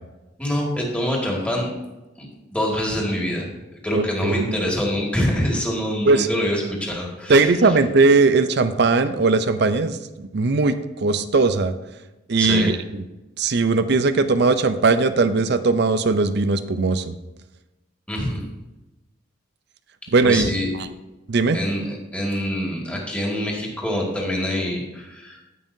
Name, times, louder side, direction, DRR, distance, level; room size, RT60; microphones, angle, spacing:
voice 1, 0.4-1.7 2.2-2.3 2.5-3.5 3.8-7.5 12.4-12.7 18.1-18.4 20.2-20.7 21.5-25.4, equal, 5° left, -2 dB, 1.9 m, -25 dB
voice 2, 3.9-4.6 6.1-6.3 7.3-11.7 12.3-13.0 13.4-17.1 20.1-20.9 21.3-21.6, right 3 dB, 60° right, 11 dB, 0.6 m, -19 dB
16.0 x 5.5 x 2.7 m, 1.0 s
head